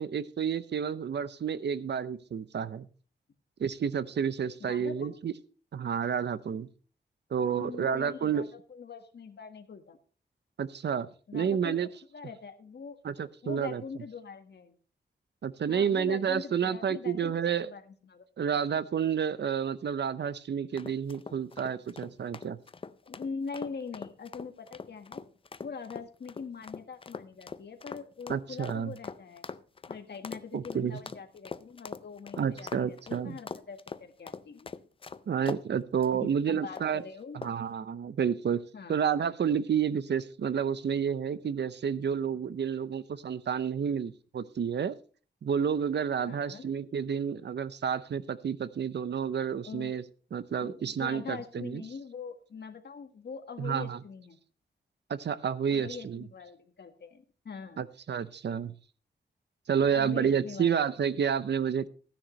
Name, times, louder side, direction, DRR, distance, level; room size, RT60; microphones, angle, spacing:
voice 1, 0.0-2.9 3.6-5.3 5.7-6.7 7.3-8.5 10.6-11.1 11.3-11.9 13.0-13.8 15.4-17.7 18.4-22.6 28.3-28.9 30.5-31.0 32.4-33.4 35.3-37.0 37.3-38.6 38.9-45.0 45.4-50.0 50.3-51.8 53.6-54.0 55.1-56.2 57.8-58.8 59.7-61.9, right 7 dB, 70° right, 15 dB, 0.7 m, -30 dB
voice 2, 4.6-5.2 7.5-10.0 11.3-11.8 12.1-13.0 13.4-14.8 15.7-18.2 23.0-25.3 25.6-29.5 29.9-34.7 36.1-37.4 38.7-39.0 46.2-46.7 49.6-50.0 50.6-54.4 55.7-57.8 59.7-60.8 61.2-61.3, left 5 dB, 65° left, 6 dB, 1.6 m, -43 dB
sound 1, 20.8-35.6 36.0-36.2 36.7-37.0 37.4-37.7, left 5 dB, 30° left, 0.4 m, -42 dB
15.5 x 10.0 x 3.2 m, 0.40 s
wide cardioid pair, 160°, 18 cm